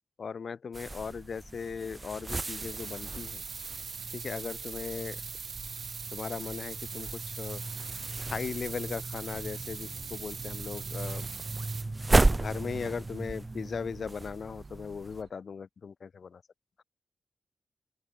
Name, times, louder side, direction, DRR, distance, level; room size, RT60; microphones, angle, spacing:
voice 1, 0.2-3.4 4.1-5.2 6.1-7.6 8.3-11.3 12.3-16.4, left 6 dB, 55° left, 0.7 m, -38 dB
sound 1, 0.7-15.2, right 2 dB, 20° right, 0.3 m, -34 dB
sound 2, 2.3-11.8, right 5 dB, 55° right, 1.0 m, -41 dB
sound 3, 9.1-15.3, right 4 dB, 40° right, 4.1 m, -57 dB
open air
wide cardioid pair, 125°, 0 cm